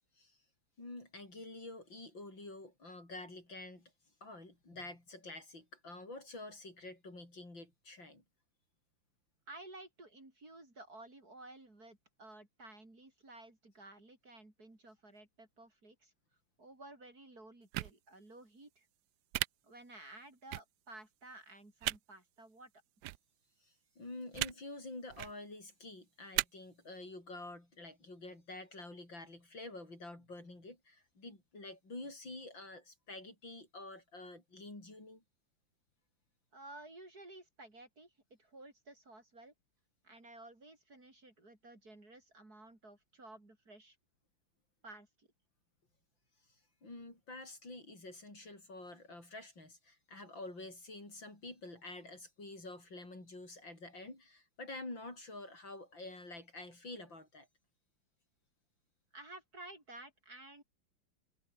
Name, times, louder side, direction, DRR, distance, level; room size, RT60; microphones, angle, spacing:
voice 1, 0.8-3.9 4.2-8.2 23.6-35.2 46.5-57.5, left 2 dB, 60° left, 8.4 m, -48 dB
voice 2, 9.5-16.1 16.6-18.9 19.6-22.7 36.5-39.5 40.0-44.0 44.8-45.3 59.1-60.6, right 2 dB, 45° right, 6.2 m, -54 dB
sound 1, 17.7-17.9 19.3-19.5 20.5-20.6 21.8-22.0 23.0-23.2 24.3-24.5 25.1-25.3 26.3-26.4, right 16 dB, 85° right, 0.9 m, -34 dB
omnidirectional pair, 2.3 m